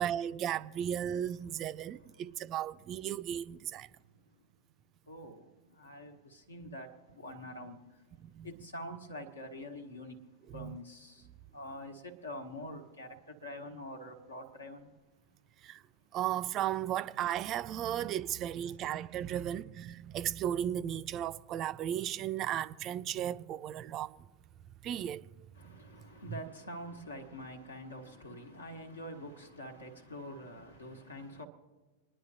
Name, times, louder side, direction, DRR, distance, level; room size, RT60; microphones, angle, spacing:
voice 1, 0.0-3.9 8.2-8.5 10.5-10.8 15.6-15.8 16.1-24.3 24.8-25.3, right 11 dB, 35° right, 0.3 m, -35 dB
voice 2, 1.4-2.5 3.1-3.5 3.8-4.5 5.1-14.9 25.5-31.5, left 1 dB, 75° left, 1.3 m, -46 dB
27.5 x 10.0 x 2.7 m
figure-of-eight pair, 90°, 0 cm